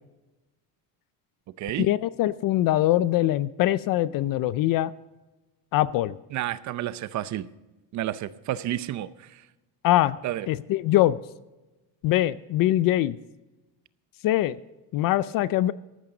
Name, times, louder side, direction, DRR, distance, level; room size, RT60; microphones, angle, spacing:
voice 1, 1.8-4.9 5.7-6.2 9.8-10.2 10.5-11.2 12.0-13.2 14.2-14.6 14.9-15.7, left 14 dB, 55° left, 17 dB, 0.5 m, -23 dB
voice 2, 6.3-7.5 7.9-9.4 10.2-10.5, right 13 dB, 45° right, 16 dB, 0.6 m, -30 dB
14.5 x 12.0 x 3.9 m, 1.1 s
cardioid pair, 160°, 40 cm